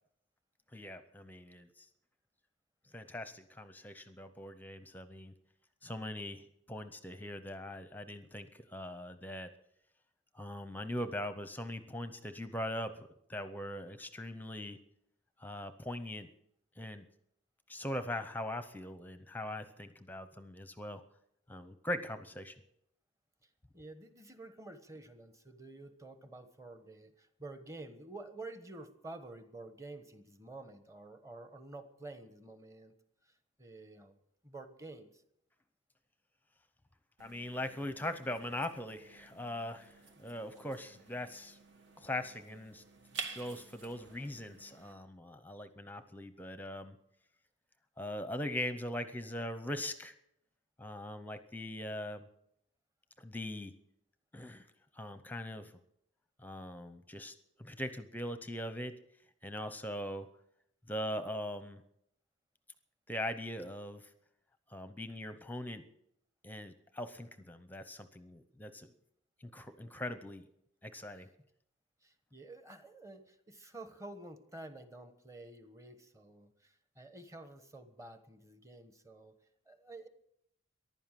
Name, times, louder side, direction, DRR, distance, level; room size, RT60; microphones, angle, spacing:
voice 1, 0.7-1.9 2.9-5.3 5.8-9.5 10.3-14.8 15.4-16.3 16.8-17.0 17.7-21.0 21.5-22.5 37.2-39.9 40.2-41.6 42.0-42.8 43.3-47.0 48.0-50.1 50.8-52.3 53.2-53.7 54.3-54.7 54.9-55.7 56.4-59.0 59.4-60.3 60.9-61.8 63.1-64.1 64.7-65.8 66.4-68.9 69.4-70.4 70.8-71.3, left 1 dB, 10° left, 11 dB, 0.7 m, -41 dB
voice 2, 23.4-32.9 33.2-33.3 33.6-34.2 34.4-35.2 71.1-71.2 72.0-79.4 79.7-80.1, right 2 dB, 15° right, 9 dB, 1.2 m, -50 dB
sound 1, 37.2-44.9, right 5 dB, 60° right, 1.4 m, -50 dB
15.0 x 11.5 x 7.5 m, 0.76 s
head